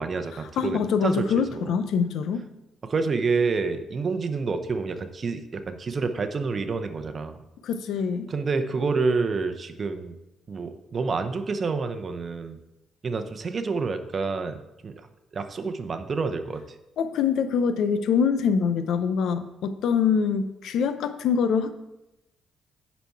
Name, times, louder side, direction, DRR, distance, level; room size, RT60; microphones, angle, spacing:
voice 1, 0.0-1.7 2.8-7.4 8.3-10.1 10.5-12.6 13.0-14.9 15.3-16.6, right 4 dB, 40° right, 8 dB, 0.7 m, -28 dB
voice 2, 0.6-2.5 7.6-8.3 17.0-21.7, left 6 dB, 75° left, 10 dB, 0.6 m, -24 dB
10.0 x 4.2 x 4.6 m, 0.93 s
cardioid pair, 90°, 0 cm